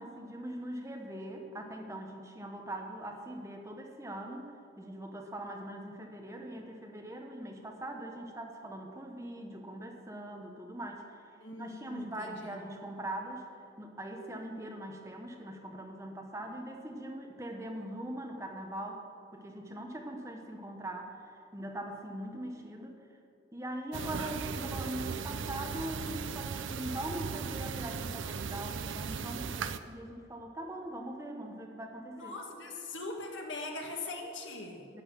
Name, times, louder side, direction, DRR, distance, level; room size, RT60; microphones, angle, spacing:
voice 1, 0.0-11.2 11.6-13.4 13.8-19.0 19.3-21.2 21.5-23.0 23.5-32.3 34.9-35.0, right 1 dB, 15° right, 2 dB, 1.1 m, -41 dB
voice 2, 11.4-12.6 24.0-24.4 32.2-34.9, left 2 dB, 85° left, 1 dB, 1.8 m, -42 dB
sound 1, 23.9-29.8, right 5 dB, 90° right, 0.5 m, -37 dB
11.5 x 6.6 x 9.6 m, 2.5 s
head